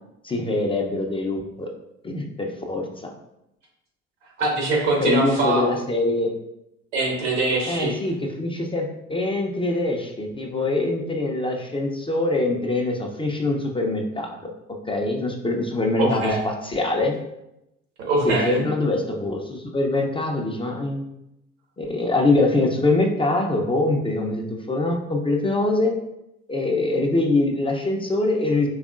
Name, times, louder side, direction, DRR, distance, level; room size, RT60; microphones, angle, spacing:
voice 1, 0.2-1.7 2.0-3.1 5.0-6.4 7.7-14.4 14.9-17.1 18.2-21.1 21.8-25.9 26.5-28.7, left 2 dB, 15° left, 1 dB, 0.6 m, -24 dB
voice 2, 4.4-5.7 6.9-8.0 16.0-16.4 18.1-18.6, right 2 dB, 75° right, -1 dB, 1.5 m, -22 dB
4.8 x 3.4 x 2.4 m, 0.85 s
figure-of-eight pair, 65°, 37 cm